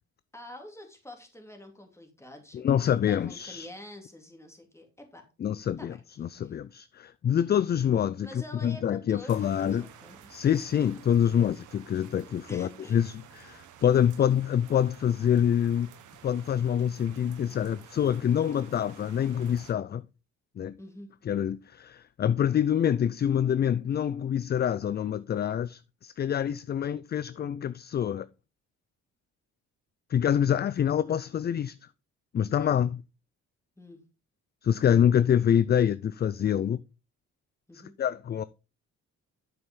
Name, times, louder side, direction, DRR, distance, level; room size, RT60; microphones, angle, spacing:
voice 1, 0.3-5.3 5.8-6.6 8.2-10.3 12.5-13.0 20.8-21.1 33.8-34.0 37.7-37.9, left 1 dB, 10° left, 2.8 m, -47 dB
voice 2, 2.5-3.7 5.4-5.9 6.2-8.3 8.6-9.9 10.3-15.9 16.2-20.0 20.6-20.8 21.3-28.3 30.1-31.7 32.3-33.0 34.6-36.8 38.0-38.4, left 9 dB, 35° left, 0.4 m, -26 dB
sound 1, 9.3-19.7, right 9 dB, 80° right, 1.4 m, -52 dB
8.7 x 6.9 x 3.7 m
cardioid pair, 90°, 30 cm